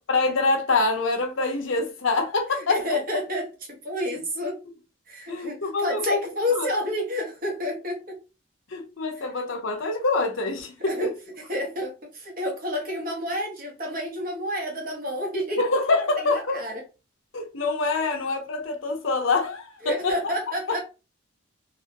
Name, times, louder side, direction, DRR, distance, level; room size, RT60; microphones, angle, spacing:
voice 1, 0.1-3.0 5.3-6.2 6.5-6.7 8.7-11.1 15.6-16.6 17.3-20.2, left 3 dB, 75° left, 0.8 m, -25 dB
voice 2, 2.5-4.6 5.1-8.2 10.9-15.6 16.2-16.8 19.8-20.8, left 1 dB, 45° right, 1.1 m, -30 dB
3.4 x 2.5 x 2.9 m
head